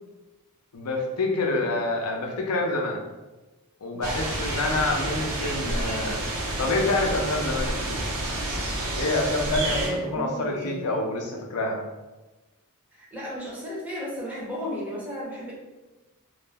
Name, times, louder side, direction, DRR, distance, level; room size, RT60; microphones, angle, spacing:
voice 1, 0.7-3.0 3.8-6.2 6.6-8.1 9.0-11.8, left 2 dB, 90° left, 1 dB, 0.5 m, -27 dB
sound 1, 4.0-9.9, right 1 dB, 85° right, 0.7 m, -29 dB
voice 2, 9.6-10.8 12.9-15.5, equal, 5° right, -6 dB, 0.7 m, -34 dB
2.4 x 2.0 x 3.4 m, 1.1 s
head